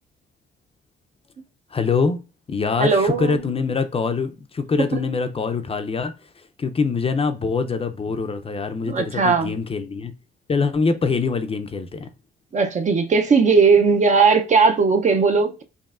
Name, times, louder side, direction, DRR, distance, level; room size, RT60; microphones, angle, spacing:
voice 1, 1.7-2.2 2.5-6.1 6.6-10.1 10.5-12.1, left 4 dB, 30° left, 0.5 m, -24 dB
voice 2, 2.8-3.4 4.9-5.0 8.9-9.5 12.5-15.6, right 5 dB, 40° right, 0.5 m, -18 dB
5.3 x 2.6 x 2.4 m
cardioid pair, 90°, 20 cm